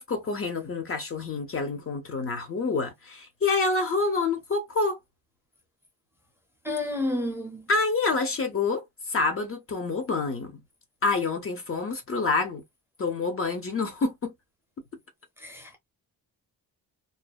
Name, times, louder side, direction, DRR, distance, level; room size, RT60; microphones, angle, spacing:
voice 1, 0.0-5.0 7.7-8.8 9.1-10.6 11.0-12.6 13.0-14.3, left 3 dB, 35° left, 0.7 m, -27 dB
voice 2, 6.6-7.6 15.4-15.8, left 1 dB, 5° right, 0.7 m, -30 dB
2.6 x 2.1 x 2.3 m
cardioid pair, 115°, 38 cm